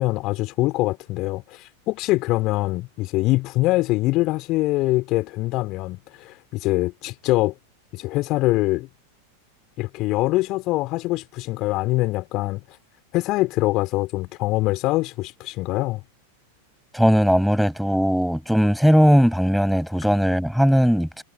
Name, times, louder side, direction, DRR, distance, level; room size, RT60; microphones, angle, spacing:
voice 1, 0.0-7.5 7.9-8.9 9.8-12.6 13.1-16.0, left 19 dB, 40° left, 3.6 m, -23 dB
voice 2, 16.9-21.2, equal, ahead, 6.1 m, -18 dB
figure-of-eight pair, 90°, 0 cm